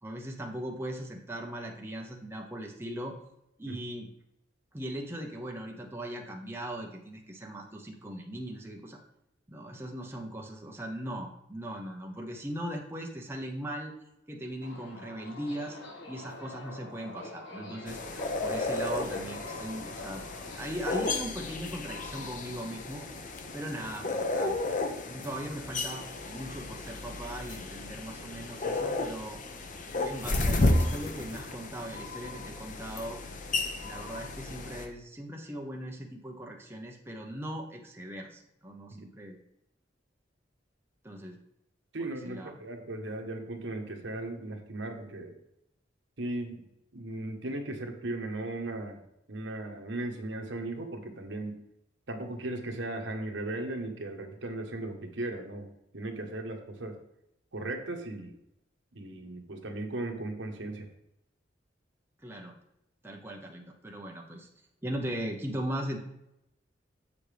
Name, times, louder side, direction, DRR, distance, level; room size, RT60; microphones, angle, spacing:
voice 1, 0.0-3.1 3.6-4.1 4.7-9.0 9.5-13.9 14.3-15.8 16.1-18.0 18.4-20.2 20.6-23.0 23.5-24.5 25.1-29.4 29.9-33.2 33.8-39.4 41.0-41.4 42.0-42.5 62.2-62.5 63.0-64.5 64.8-66.0, right 1 dB, 15° right, 0 dB, 0.8 m, -39 dB
Subway metro underground, 14.6-20.6, left 2 dB, 70° left, 1.8 m, -45 dB
sound 1, 17.9-34.9, left 2 dB, 45° left, 0.8 m, -33 dB
voice 2, 41.9-45.4 46.2-49.0 49.3-51.6 52.1-55.7 55.9-57.0 57.5-58.3 58.9-60.9, right 2 dB, 75° right, 4 dB, 1.1 m, -37 dB
7.5 x 6.9 x 3.4 m, 0.81 s
head